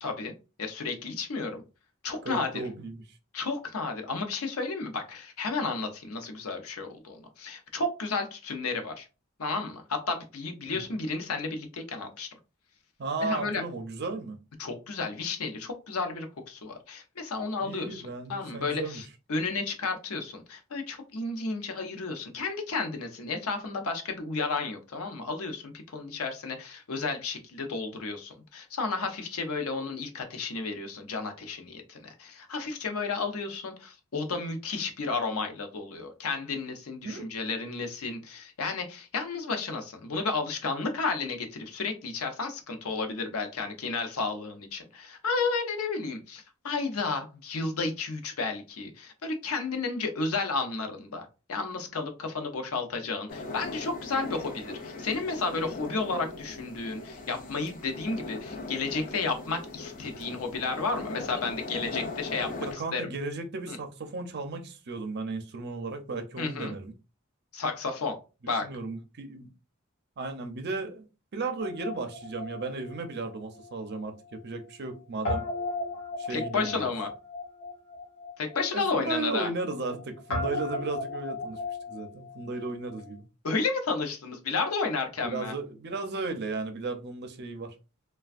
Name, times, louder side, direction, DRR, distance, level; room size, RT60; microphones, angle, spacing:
voice 1, 0.0-0.3 0.6-1.6 2.0-2.6 3.3-9.1 9.4-12.3 13.2-13.6 14.6-18.0 18.3-63.1 63.7-63.8 66.4-66.7 67.5-68.2 68.5-68.7 76.3-77.1 78.4-79.5 83.4-85.5, left 4 dB, 85° left, 0.6 m, -32 dB
voice 2, 2.2-3.0 10.7-10.9 13.0-14.4 17.6-19.0 37.0-37.2 62.7-66.9 68.6-69.5 70.2-71.1 71.3-75.4 76.2-76.8 78.7-81.6 81.9-83.2 85.2-87.7, right 3 dB, 50° right, 0.5 m, -35 dB
sound 1, 53.3-62.7, left 2 dB, 40° left, 0.6 m, -39 dB
Guitar, 71.6-74.0 74.3-74.4 75.2-83.1, left 2 dB, 70° left, 1.0 m, -36 dB
3.2 x 2.2 x 2.4 m
head